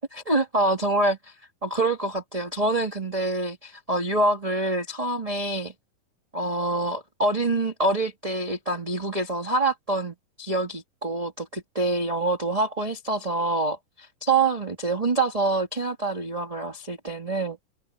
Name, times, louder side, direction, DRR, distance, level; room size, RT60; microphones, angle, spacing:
voice 1, 0.1-1.3 1.6-5.7 6.3-17.6, right 2 dB, 15° right, 1.3 m, -26 dB
open air
omnidirectional pair, 3.8 m